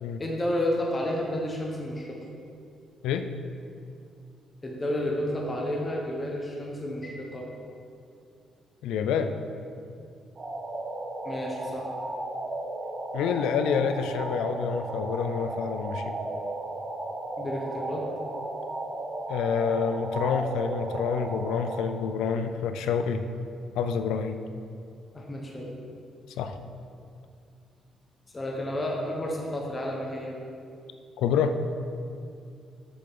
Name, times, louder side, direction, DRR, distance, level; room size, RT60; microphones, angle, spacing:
voice 1, 0.2-2.2 4.6-7.5 11.2-11.9 17.4-18.1 25.1-25.7 28.3-30.3, left 1 dB, 25° left, -2 dB, 1.2 m, -31 dB
voice 2, 8.8-9.3 13.1-16.2 19.3-23.3 23.8-24.4 26.4-26.6 31.2-31.6, left 6 dB, 90° left, 9 dB, 0.4 m, -27 dB
sound 1, 10.4-21.8, right 2 dB, 45° right, 1.9 m, -34 dB
7.7 x 6.7 x 3.8 m, 2.4 s
cardioid pair, 90°, 0 cm